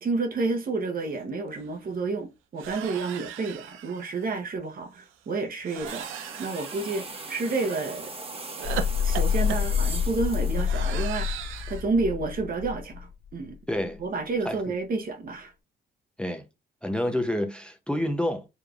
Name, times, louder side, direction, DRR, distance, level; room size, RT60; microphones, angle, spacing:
voice 1, 0.0-6.1 6.4-8.1 8.6-13.6 14.0-15.5, right 3 dB, 45° right, 1.0 m, -30 dB
sound 1, 1.2-1.3 1.5-1.7 2.6-4.3 5.6-7.8 8.6-11.8, right 10 dB, 85° right, 0.6 m, -38 dB
sound 2, 5.8-11.6, right 3 dB, 30° right, 1.1 m, -40 dB
sound 3, 8.6-13.3, left 7 dB, 45° left, 0.9 m, -27 dB
voice 2, 13.7-14.0 14.4-14.6 16.2-16.5 16.8-18.5, left 1 dB, 5° left, 0.6 m, -28 dB
4.9 x 3.4 x 2.4 m
cardioid pair, 90°, 20 cm